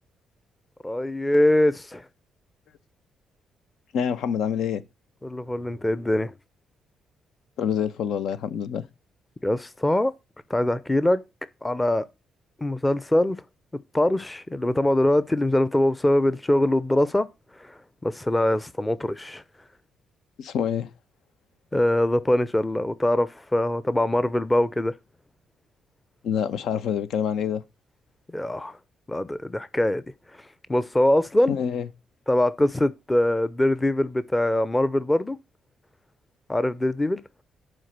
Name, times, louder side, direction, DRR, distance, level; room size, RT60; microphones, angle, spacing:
voice 1, 0.8-2.0 5.2-6.3 9.4-10.1 10.5-11.2 11.6-12.1 12.6-13.4 13.9-17.3 17.6-17.7 18.0-19.4 21.7-24.9 28.3-28.8 29.1-30.0 30.7-31.6 32.3-35.4 36.5-37.2, left 1 dB, 10° left, 0.7 m, -23 dB
voice 2, 3.9-4.8 7.6-8.8 20.4-20.9 26.2-27.6 31.5-31.9, left 8 dB, 75° left, 1.2 m, -26 dB
11.0 x 4.9 x 6.7 m
cardioid pair, 120°, 0 cm